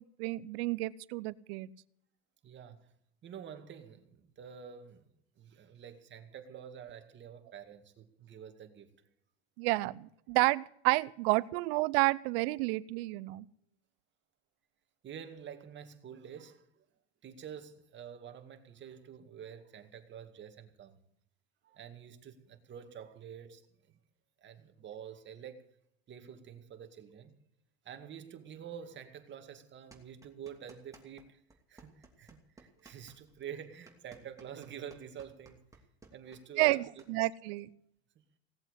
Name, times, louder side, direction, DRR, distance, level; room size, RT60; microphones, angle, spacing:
voice 1, 0.0-1.7 9.6-13.5 36.6-37.7, right 22 dB, 70° right, 0.7 m, -30 dB
voice 2, 2.4-2.9 3.2-5.0 5.4-8.9 12.5-12.6 15.0-16.7 17.2-21.0 21.6-23.6 24.4-25.6 26.1-27.3 27.8-31.4 31.7-35.6 36.1-36.8, right 8 dB, 35° right, 2.2 m, -48 dB
sound 1, 29.9-31.3 31.5-37.1, right 3 dB, 10° right, 2.8 m, -58 dB
18.0 x 8.1 x 8.2 m
supercardioid pair, 105°, 31 cm